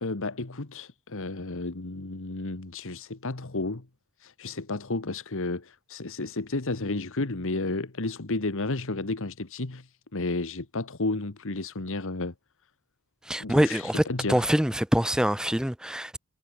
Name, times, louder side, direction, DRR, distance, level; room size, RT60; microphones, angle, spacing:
voice 1, 0.0-3.8 4.2-12.3 13.4-14.5, left 2 dB, 65° left, 1.5 m, -32 dB
voice 2, 13.3-14.0 14.3-16.2, equal, 5° right, 0.5 m, -24 dB
head